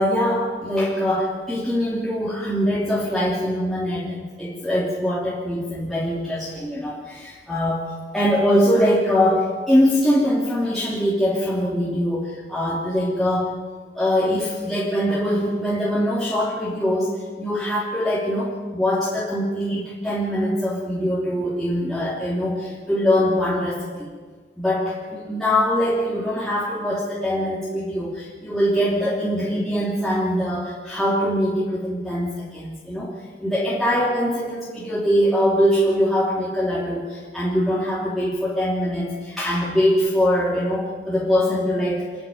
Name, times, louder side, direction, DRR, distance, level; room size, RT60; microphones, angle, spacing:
voice 1, 0.0-13.5 13.9-17.1 17.4-24.1 24.6-42.1, equal, ahead, -8 dB, 3.0 m, -22 dB
27.5 x 10.5 x 9.4 m, 1.5 s
head